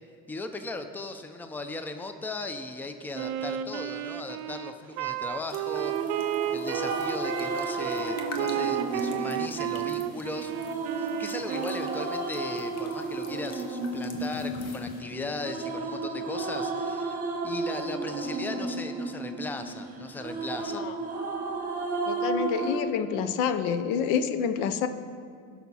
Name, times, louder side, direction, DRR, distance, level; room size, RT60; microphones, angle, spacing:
voice 1, 0.3-10.5 10.9-17.2 17.4-20.8, left 2 dB, 5° left, 7 dB, 0.5 m, -37 dB
Wind instrument woodwind instrument, 3.1-12.1, right 11 dB, 90° right, 0.5 m, -33 dB
sound 1, 5.5-15.0, left 4 dB, 55° left, 1.1 m, -48 dB
sound 2, 5.7-22.8, right 3 dB, 30° right, 1.3 m, -33 dB
voice 2, 22.1-24.9, left 7 dB, 80° left, 10 dB, 0.7 m, -28 dB
16.5 x 5.9 x 4.1 m, 2.3 s
cardioid pair, 130°, 30 cm